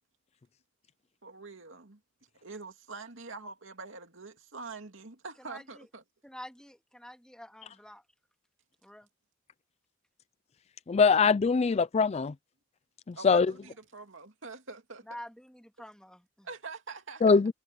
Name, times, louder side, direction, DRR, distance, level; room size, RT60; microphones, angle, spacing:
voice 1, 1.2-2.0 2.4-6.0 13.2-15.2 16.4-17.4, right 4 dB, 70° right, 2.6 m, -45 dB
voice 2, 5.4-5.9 6.2-8.0 8.8-9.1 15.1-16.5, left 1 dB, 5° left, 2.5 m, -48 dB
voice 3, 10.9-12.3 13.1-13.5 17.2-17.5, left 5 dB, 30° left, 0.4 m, -23 dB
head